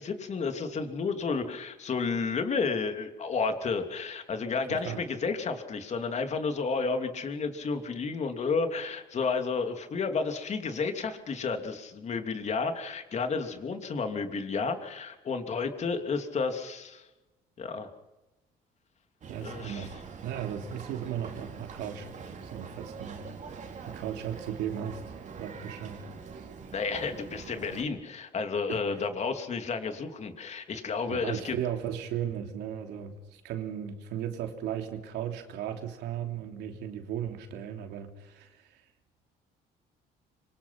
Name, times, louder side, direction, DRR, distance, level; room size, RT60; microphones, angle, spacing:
voice 1, 0.0-17.1 17.6-17.9 19.4-19.9 26.7-31.5, left 4 dB, 40° left, 6 dB, 3.0 m, -31 dB
voice 2, 4.7-5.0 19.3-20.0 20.2-22.1 22.4-23.2 23.6-26.1 26.3-26.5 28.7-28.8 31.1-38.8, right 9 dB, 85° right, 5 dB, 3.2 m, -36 dB
Boat Water vehicle, 19.2-27.8, right 5 dB, 45° right, 3.5 m, -44 dB
26.0 x 24.5 x 5.9 m, 1.1 s
cardioid pair, 110°, 17 cm